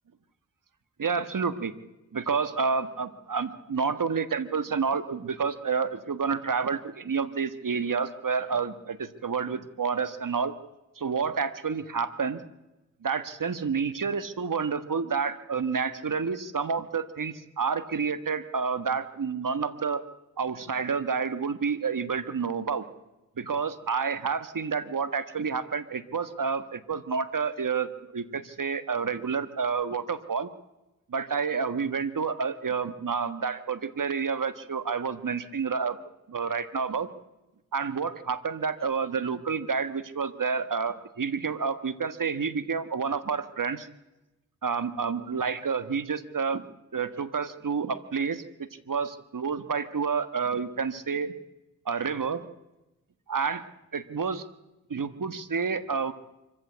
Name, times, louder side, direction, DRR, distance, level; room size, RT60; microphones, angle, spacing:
voice 1, 1.0-1.7 2.1-10.5 11.0-12.4 13.0-20.0 20.4-22.8 23.4-30.5 31.1-36.0 36.3-37.1 37.7-43.9 44.6-46.6 46.9-48.4 48.9-51.3 51.8-52.4 53.3-53.6 53.9-54.4 54.9-56.1, right 5 dB, 75° right, 12 dB, 1.5 m, -29 dB
24.5 x 15.0 x 8.1 m, 0.99 s
cardioid pair, 45°, 33 cm